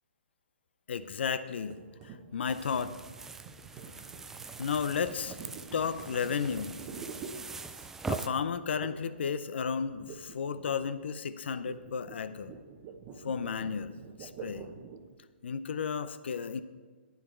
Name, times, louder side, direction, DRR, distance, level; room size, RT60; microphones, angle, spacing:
voice 1, 0.9-1.8 2.0-3.0 4.6-5.3 5.7-6.7 8.1-12.5 13.2-14.7 15.4-16.6, left 6 dB, 65° left, 13 dB, 0.6 m, -33 dB
sound 1, 1.7-8.0 8.8-9.2 9.5-15.2, right 5 dB, 30° right, 1.0 m, -47 dB
sound 2, 2.5-8.3, right 4 dB, 5° right, 0.3 m, -42 dB
11.0 x 9.4 x 4.4 m, 1.4 s
hypercardioid pair, 150°, 6 cm